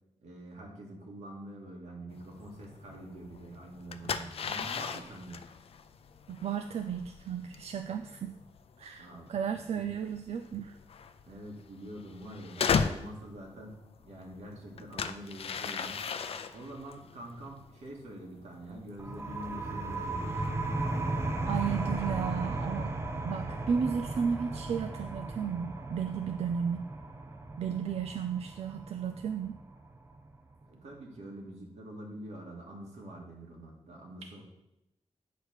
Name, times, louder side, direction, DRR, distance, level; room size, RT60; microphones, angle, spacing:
voice 1, 0.2-5.4 9.0-9.3 9.6-9.9 11.3-16.0 16.5-20.4 30.7-34.4, right 1 dB, 90° right, -2 dB, 1.9 m, -45 dB
sound 1, 2.1-20.5, left 6 dB, 60° left, 0.4 m, -38 dB
voice 2, 6.3-8.3 8.8-10.8 21.5-22.9 23.2-26.9 27.6-29.6, right 7 dB, 70° right, 7 dB, 0.4 m, -34 dB
sound 2, 19.0-30.4, right 2 dB, 25° right, 0.6 m, -36 dB
8.2 x 3.3 x 6.3 m, 0.89 s
wide cardioid pair, 120°, 11 cm